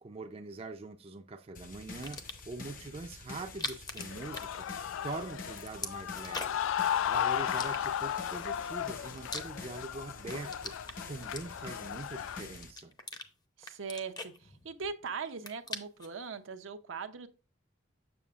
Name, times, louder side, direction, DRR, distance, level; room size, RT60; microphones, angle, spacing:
voice 1, 0.0-2.2 2.5-4.7 5.0-6.6 7.1-10.7 11.1-12.9, right 3 dB, 30° right, 0.5 m, -43 dB
sound 1, 1.5-12.7, left 3 dB, 45° left, 0.8 m, -48 dB
sound 2, 2.0-2.6 3.4-5.1 5.4-6.7 7.5-8.3 8.8-9.9 10.2-11.9 12.4-13.3 13.6-15.0 15.3-16.2, left 3 dB, 20° left, 0.7 m, -42 dB
sound 3, 4.1-12.4, left 9 dB, 90° left, 0.3 m, -35 dB
voice 2, 13.6-14.3 14.6-17.3, right 5 dB, 80° right, 0.7 m, -40 dB
7.0 x 6.9 x 2.4 m
head